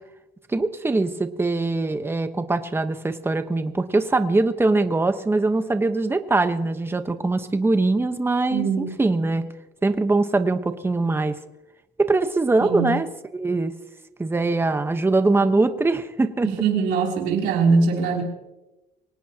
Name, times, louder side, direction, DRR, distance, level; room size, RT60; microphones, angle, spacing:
voice 1, 0.5-9.4 9.8-11.3 12.0-13.1 13.3-13.7 14.2-16.5, right 3 dB, 15° right, 9 dB, 1.1 m, -22 dB
voice 2, 8.5-8.9 12.6-12.9 16.4-18.2, right 5 dB, 90° right, -1 dB, 3.2 m, -21 dB
24.5 x 18.5 x 2.9 m, 1.0 s
cardioid pair, 110°, 17 cm